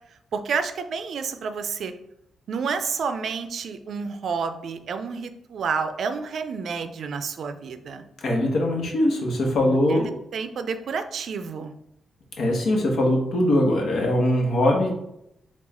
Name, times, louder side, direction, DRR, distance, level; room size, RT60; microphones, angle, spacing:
voice 1, 0.3-1.9 2.5-8.0 9.7-11.7, right 5 dB, 70° right, 9 dB, 0.4 m, -30 dB
voice 2, 8.2-10.1 12.4-15.0, left 1 dB, 75° left, 1 dB, 1.0 m, -21 dB
4.5 x 2.4 x 4.2 m, 0.80 s
cardioid pair, 95°, 0 cm